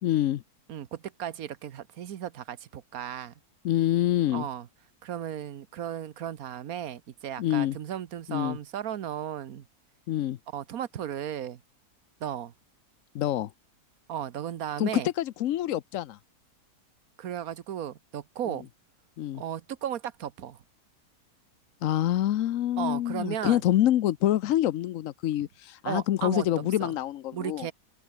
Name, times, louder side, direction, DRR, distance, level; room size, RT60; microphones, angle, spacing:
voice 1, 0.0-0.4 3.6-4.5 7.4-7.8 8.3-8.6 10.1-10.4 13.1-13.5 14.8-16.2 19.2-19.4 21.8-27.7, left 12 dB, 65° left, 0.9 m, -26 dB
voice 2, 0.7-3.3 4.3-4.7 5.0-9.6 10.5-11.6 12.2-12.5 14.1-15.1 17.2-18.7 19.3-20.6 22.8-23.6 25.8-26.9 27.3-27.7, right 10 dB, 65° right, 1.4 m, -35 dB
open air
omnidirectional pair, 1.7 m